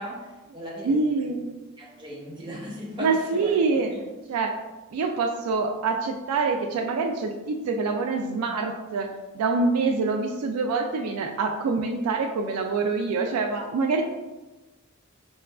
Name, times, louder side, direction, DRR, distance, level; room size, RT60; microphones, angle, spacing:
voice 1, 0.0-1.0 1.3-1.4 1.8-4.0, equal, 20° right, -4 dB, 0.8 m, -38 dB
voice 2, 0.8-1.5 3.0-3.9 4.3-4.5 4.9-9.1 9.3-14.0, right 4 dB, 90° right, 3 dB, 0.3 m, -25 dB
5.5 x 2.3 x 2.3 m, 1.1 s
head